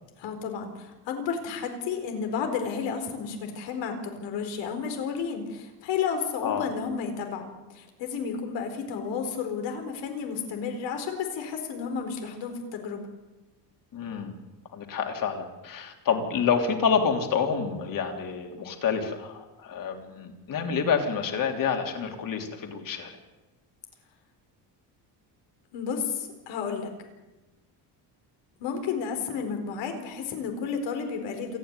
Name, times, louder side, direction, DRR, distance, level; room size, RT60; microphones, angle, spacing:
voice 1, 0.2-13.1 25.7-26.9 28.6-31.6, left 6 dB, 90° left, 5 dB, 4.4 m, -32 dB
voice 2, 13.9-14.3 14.7-23.1, left 6 dB, 50° left, 3 dB, 3.3 m, -28 dB
27.5 x 9.9 x 9.8 m, 1.1 s
cardioid pair, 145°, 42 cm